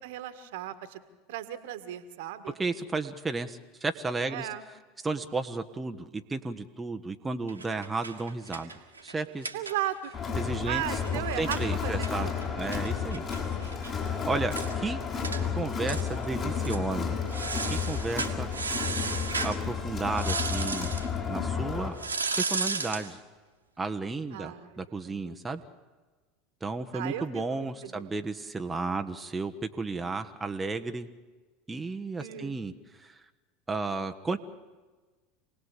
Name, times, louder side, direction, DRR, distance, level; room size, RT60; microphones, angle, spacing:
voice 1, 0.0-1.0 1.3-2.6 4.3-4.7 9.5-10.1 10.6-12.3 17.4-17.5 24.3-24.8 25.0-25.3 26.9-28.1 32.2-32.6, right 12 dB, 60° right, 11 dB, 1.8 m, -36 dB
voice 2, 2.6-4.5 5.0-8.7 9.0-9.5 10.4-10.8 11.1-12.3 12.6-13.2 13.8-15.0 15.5-17.2 17.7-18.5 19.3-20.9 21.3-21.9 22.4-23.2 23.8-25.6 26.6-31.1 31.7-32.7 33.0-33.2 33.7-34.4, right 3 dB, 15° right, 6 dB, 1.3 m, -33 dB
sound 1, 7.5-10.1 10.4-10.5 10.8-13.9 14.2-14.3 14.5-14.8 15.2-15.4 15.9-16.3 16.6-16.8 17.3-19.6 20.1-21.1 22.0-23.1, right 4 dB, 85° right, 2.0 m, -34 dB
Crowd, 10.1-21.9, left 6 dB, 35° left, 6.9 m, -32 dB
27.5 x 18.5 x 8.4 m, 1.3 s
figure-of-eight pair, 80°, 0 cm